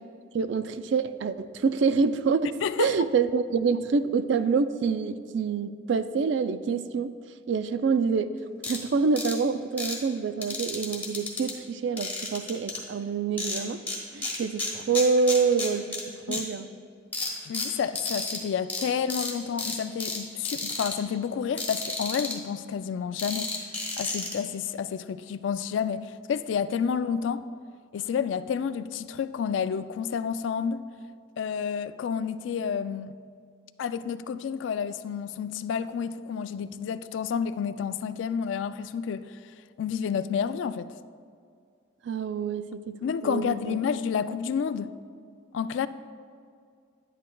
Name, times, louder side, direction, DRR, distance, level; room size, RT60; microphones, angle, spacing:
voice 1, 0.3-7.1 7.5-8.3 8.6-13.8 14.1-16.0 16.3-16.7 42.0-43.0 43.2-43.8, right 5 dB, 75° right, 12 dB, 0.3 m, -26 dB
voice 2, 2.6-3.0 16.3-16.5 17.4-23.5 24.0-27.5 27.9-30.8 31.4-33.1 33.8-39.3 39.8-40.9 43.0-44.9 45.5-45.9, left 7 dB, 85° left, 13 dB, 0.3 m, -30 dB
sound 1, 8.6-8.8 9.2-9.3 9.8-10.0 10.4-11.5 12.0-12.8 13.4-14.0 14.2-16.0 16.3-16.4 17.1-18.4 18.7-18.8 19.1-19.3 19.6-20.2 20.4-20.9 21.6-22.3 23.2-24.3, left 3 dB, 10° left, 1.4 m, -32 dB
10.5 x 8.4 x 2.3 m, 2.2 s
head